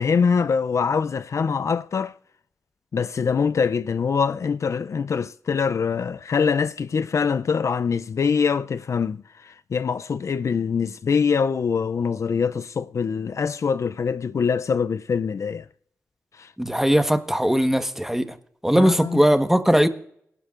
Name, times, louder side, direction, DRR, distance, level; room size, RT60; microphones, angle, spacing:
voice 1, 0.0-2.2 2.9-15.7 16.3-16.5 18.8-19.2, left 6 dB, 65° left, 0.4 m, -24 dB
voice 2, 16.6-18.3 18.6-19.9, equal, 5° right, 1.2 m, -19 dB
19.5 x 12.0 x 2.5 m
cardioid pair, 40°, 6 cm